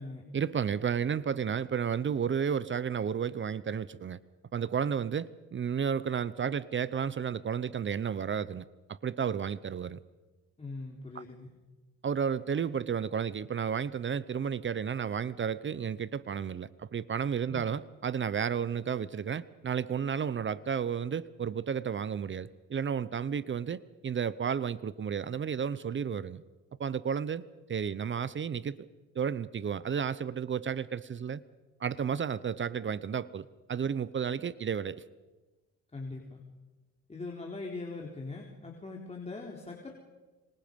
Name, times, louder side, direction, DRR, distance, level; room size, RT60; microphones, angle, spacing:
voice 1, 0.3-4.2 4.5-10.0 11.1-11.2 12.0-26.4 26.8-27.4 27.7-28.8 29.1-31.4 31.8-35.0, right 7 dB, 40° right, 17 dB, 0.8 m, -32 dB
voice 2, 10.6-11.5 17.4-17.6 35.9-36.4 37.1-39.9, left 3 dB, 20° left, -1 dB, 3.8 m, -41 dB
27.5 x 26.0 x 5.3 m, 1.2 s
cardioid pair, 90°, 30 cm